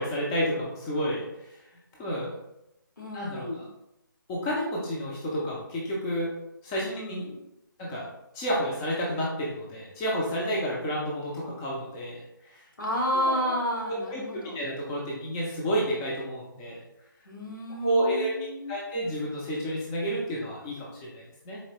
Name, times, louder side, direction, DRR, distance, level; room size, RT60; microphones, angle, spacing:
voice 1, 0.0-1.6 2.0-2.3 3.1-3.6 4.3-6.3 6.6-7.2 7.8-8.1 8.3-12.6 13.1-13.6 14.0-16.8 17.8-21.6, equal, 10° left, -5 dB, 0.4 m, -30 dB
voice 2, 3.0-3.7 6.8-7.4 12.8-14.6 17.2-18.8, equal, 65° left, -1 dB, 1.2 m, -31 dB
4.1 x 2.8 x 2.7 m, 0.87 s
figure-of-eight pair, 145°, 12 cm